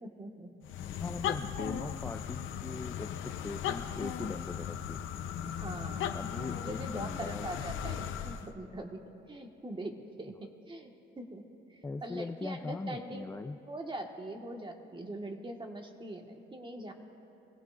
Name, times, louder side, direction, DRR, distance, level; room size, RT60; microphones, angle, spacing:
voice 1, 0.0-0.5 5.4-6.2 6.6-10.9 11.2-11.4 11.7-13.3 13.7-16.9, right 1 dB, 25° right, 3 dB, 1.5 m, -42 dB
sound 1, 0.6-8.5, left 9 dB, 80° left, 0.7 m, -37 dB
voice 2, 1.0-5.0 6.1-7.5 11.8-13.6, left 3 dB, 10° left, 7 dB, 0.3 m, -40 dB
24.0 x 16.5 x 2.5 m, 2.7 s
cardioid pair, 90°, 20 cm